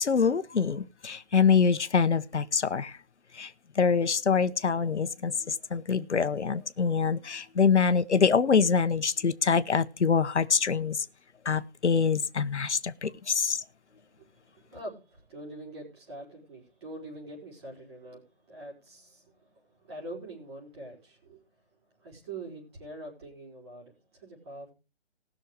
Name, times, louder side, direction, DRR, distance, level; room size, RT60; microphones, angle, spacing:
voice 1, 0.0-3.0 3.3-11.1 11.4-13.6, left 5 dB, 80° left, 1.1 m, -25 dB
voice 2, 13.9-21.6 22.0-24.7, right 2 dB, 25° right, 4.7 m, -44 dB
19.0 x 6.4 x 4.9 m
hypercardioid pair, 170°, 34 cm